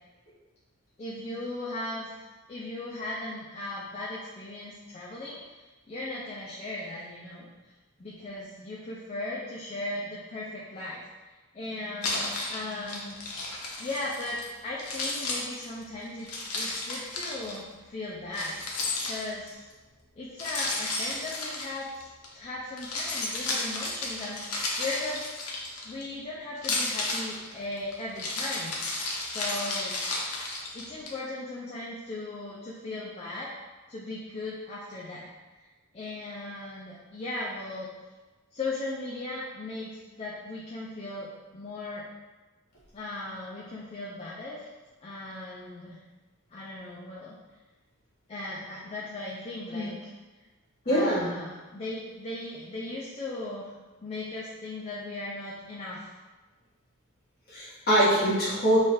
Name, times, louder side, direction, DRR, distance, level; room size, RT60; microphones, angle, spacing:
voice 1, 1.0-5.4 5.9-7.5 8.0-13.2 13.8-19.7 20.2-22.1 22.3-25.2 25.8-28.8 29.2-30.0 30.7-33.5 33.9-35.3 35.9-37.9 38.5-42.1 42.9-44.7 45.0-46.0 46.5-47.4 48.3-50.1 50.8-53.7 54.0-56.0, left 2 dB, 30° left, -6 dB, 0.4 m, -37 dB
Keys jangling, 12.0-14.5 14.8-17.6 18.3-19.5 20.4-22.3 22.7-26.1 26.6-31.1, left 2 dB, 85° left, 0.7 m, -33 dB
voice 2, 50.8-51.3 57.5-58.8, right 1 dB, 45° left, -8 dB, 1.3 m, -24 dB
3.1 x 2.4 x 4.2 m, 1.2 s
head